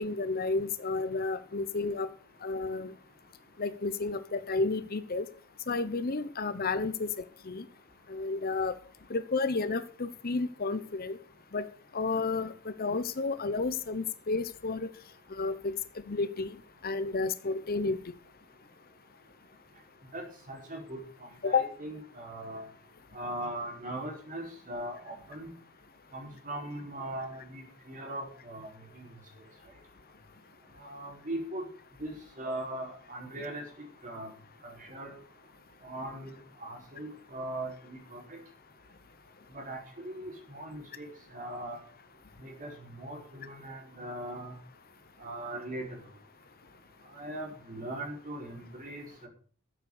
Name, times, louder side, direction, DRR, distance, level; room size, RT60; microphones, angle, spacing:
voice 1, 0.0-2.1 2.4-2.9 3.6-5.3 5.7-7.1 7.5-7.6 8.1-8.8 9.1-11.2 11.5-11.6 11.9-14.9 15.3-15.7 16.1-16.5 16.8-18.0 21.4-21.7, left 3 dB, 45° left, 13 dB, 0.8 m, -31 dB
voice 2, 20.1-22.6 23.1-25.5 26.1-28.7 28.9-29.1 30.8-31.7 32.0-34.3 34.6-35.1 35.8-36.3 36.6-38.4 39.5-41.8 42.4-44.6 45.2-46.0 47.1-49.3, right 1 dB, 40° right, 1 dB, 4.9 m, -40 dB
13.5 x 8.1 x 6.6 m, 0.43 s
head